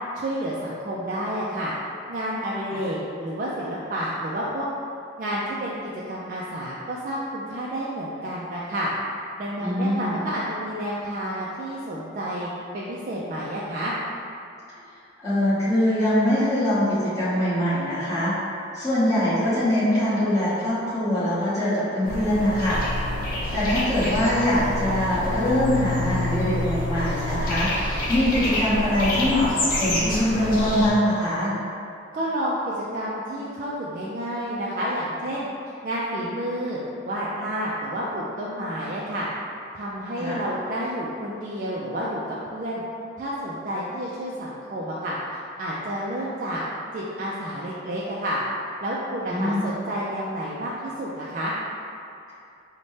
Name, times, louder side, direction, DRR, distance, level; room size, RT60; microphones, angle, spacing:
voice 1, 0.1-1.7 2.1-4.7 5.2-8.9 9.4-12.5 12.7-13.9 32.1-35.5 35.8-39.3 39.7-42.8 43.2-46.6 46.9-48.4 48.8-51.5, equal, 45° right, -6 dB, 0.3 m, -30 dB
voice 2, 9.6-10.2 15.2-18.3 18.7-22.8 23.5-31.5 40.2-40.4 49.3-49.7, left 1 dB, 15° left, -13 dB, 1.1 m, -23 dB
sound 1, 22.0-30.9, left 1 dB, 45° left, 0.6 m, -27 dB
4.0 x 2.1 x 3.1 m, 2.6 s
head